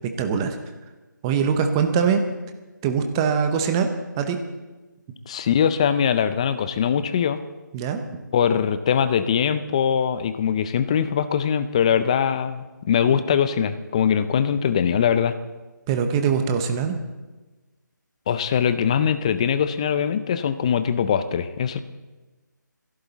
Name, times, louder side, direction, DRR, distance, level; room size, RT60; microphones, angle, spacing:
voice 1, 0.2-0.6 1.2-2.2 2.8-3.9 4.1-4.4 7.7-8.0 15.9-17.0, right 6 dB, 15° right, 7 dB, 0.8 m, -22 dB
voice 2, 5.3-7.4 8.3-15.4 18.3-21.8, left 8 dB, 20° left, 12 dB, 0.5 m, -22 dB
28.0 x 11.5 x 4.0 m, 1.2 s
figure-of-eight pair, 165°, 11 cm